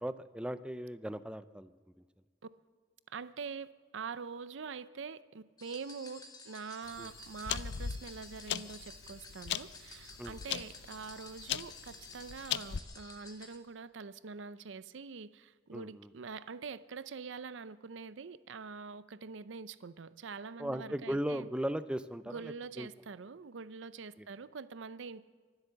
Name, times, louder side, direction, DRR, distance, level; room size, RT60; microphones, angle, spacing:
voice 1, 0.0-1.7 7.0-7.1 10.2-10.3 15.7-16.1 20.6-22.9 24.2-24.3, equal, 5° right, 13 dB, 0.4 m, -37 dB
voice 2, 3.1-21.5 22.3-25.2, right 5 dB, 80° right, 15 dB, 0.6 m, -45 dB
sound 1, 5.6-13.6, left 3 dB, 20° left, 1.5 m, -52 dB
sound 2, 6.9-12.8, left 9 dB, 65° left, 0.5 m, -39 dB
24.0 x 8.1 x 6.9 m, 1.5 s
head